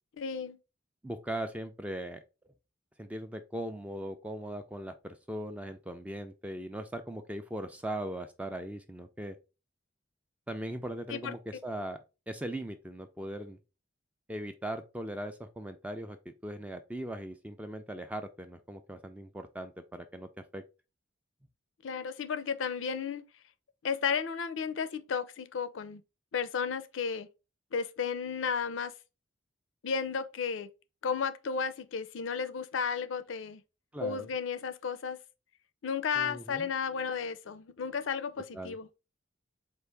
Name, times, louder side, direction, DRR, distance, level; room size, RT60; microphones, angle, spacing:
voice 1, 0.2-0.6 11.1-11.3 21.8-23.2 23.8-26.0 26.3-27.3 27.7-28.9 29.8-30.7 31.0-33.6 34.0-35.2 35.8-38.9, left 6 dB, 85° left, 0.5 m, -33 dB
voice 2, 1.0-2.2 3.0-9.4 10.5-12.0 12.3-13.6 14.3-20.6 33.9-34.3 36.2-36.7 38.5-38.8, right 1 dB, 5° right, 0.3 m, -39 dB
4.5 x 2.5 x 3.3 m
head